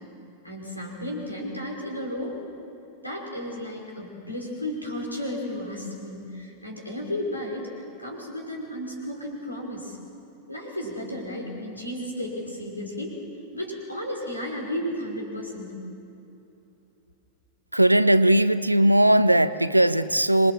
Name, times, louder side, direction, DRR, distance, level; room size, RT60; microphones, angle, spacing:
voice 1, 0.4-2.4 3.0-10.0 10.5-13.2 13.5-15.8, left 1 dB, 85° left, -1 dB, 5.3 m, -33 dB
voice 2, 17.7-20.5, right 1 dB, 85° right, 15 dB, 0.7 m, -19 dB
27.0 x 22.5 x 7.6 m, 2.8 s
figure-of-eight pair, 90°, 0 cm